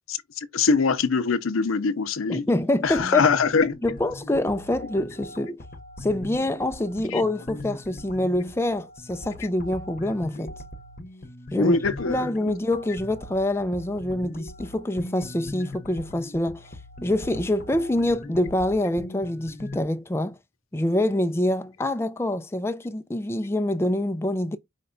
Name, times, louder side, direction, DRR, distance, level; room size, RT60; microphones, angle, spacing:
voice 1, 0.4-2.5 2.8-3.8 7.1-7.2 11.5-12.6, left 4 dB, 80° left, 0.6 m, -23 dB
voice 2, 2.3-3.3 3.8-5.6 6.0-10.5 11.5-11.8 12.1-16.7 17.0-20.4 20.7-24.6, left 1 dB, 10° left, 0.3 m, -26 dB
sound 1, 2.9-19.8, left 1 dB, 40° left, 0.8 m, -40 dB
5.2 x 2.2 x 3.8 m
head